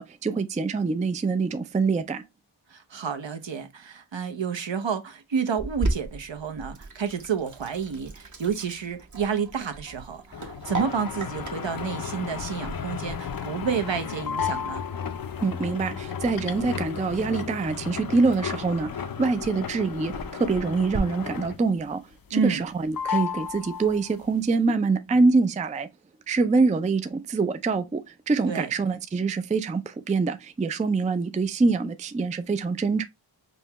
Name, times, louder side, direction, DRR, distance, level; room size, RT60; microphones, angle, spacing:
voice 1, 0.0-2.2 15.4-18.9 19.2-22.0 22.3-25.9 26.3-33.0, right 4 dB, 20° right, 0.3 m, -25 dB
voice 2, 2.7-14.8 22.3-22.6 28.5-28.7, right 6 dB, 65° right, 0.8 m, -30 dB
Sink (filling or washing), 5.6-21.0, right 2 dB, 40° right, 0.9 m, -38 dB
sound 1, 10.3-21.8 22.1-22.7 22.9-24.3, left 7 dB, 50° left, 0.5 m, -34 dB
5.4 x 2.2 x 2.8 m
wide cardioid pair, 60°, 48 cm